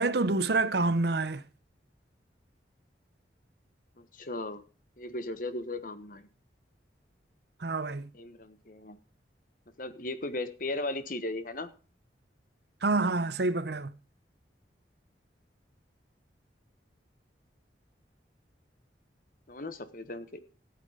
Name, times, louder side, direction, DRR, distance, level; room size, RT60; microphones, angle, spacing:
voice 1, 0.0-1.4 7.6-8.1 12.8-13.9, right 3 dB, 60° right, 0.8 m, -27 dB
voice 2, 4.2-4.6 5.0-6.3 8.1-9.0 9.8-11.7 19.5-20.4, left 2 dB, 50° left, 1.2 m, -36 dB
13.5 x 8.5 x 5.0 m
head